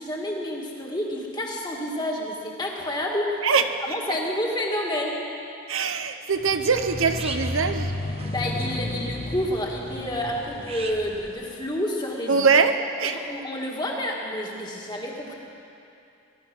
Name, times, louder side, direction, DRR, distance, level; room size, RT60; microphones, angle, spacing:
voice 1, 0.0-3.4 3.9-5.2 8.3-12.5 13.1-15.3, left 1 dB, 20° left, -1 dB, 1.9 m, -29 dB
voice 2, 5.7-7.9 12.3-13.2, right 5 dB, 70° right, 8 dB, 0.8 m, -22 dB
sound 1, 6.3-11.8, right 3 dB, 30° right, 0.9 m, -42 dB
sound 2, 6.4-11.3, left 1 dB, 35° left, 0.8 m, -33 dB
20.0 x 12.0 x 6.0 m, 2.7 s
head